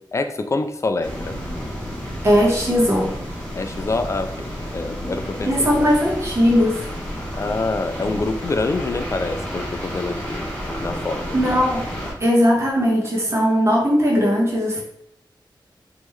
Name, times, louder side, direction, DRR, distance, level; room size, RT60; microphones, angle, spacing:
voice 1, 0.1-1.4 3.6-5.7 7.4-10.4 10.8-11.2, left 3 dB, 35° left, 8 dB, 0.4 m, -26 dB
sound 1, 1.0-12.1, equal, 15° left, 1.2 m, -31 dB
voice 2, 2.2-3.1 5.4-6.9 11.3-11.8 12.2-14.8, equal, 35° right, -3 dB, 1.2 m, -18 dB
3.6 x 3.0 x 3.2 m, 0.69 s
wide cardioid pair, 115°, 8 cm